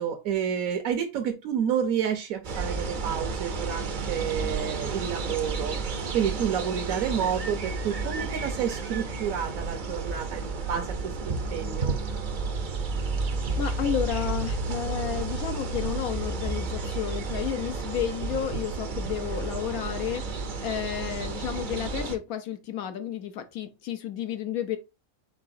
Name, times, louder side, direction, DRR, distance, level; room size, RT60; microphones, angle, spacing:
voice 1, 0.0-5.8 6.1-11.9, right 8 dB, 75° right, 1.1 m, -30 dB
sound 1, 2.4-22.2, right 4 dB, 55° right, 0.5 m, -31 dB
voice 2, 13.6-24.8, left 10 dB, 80° left, 1.1 m, -32 dB
4.7 x 3.9 x 2.5 m
omnidirectional pair, 1.5 m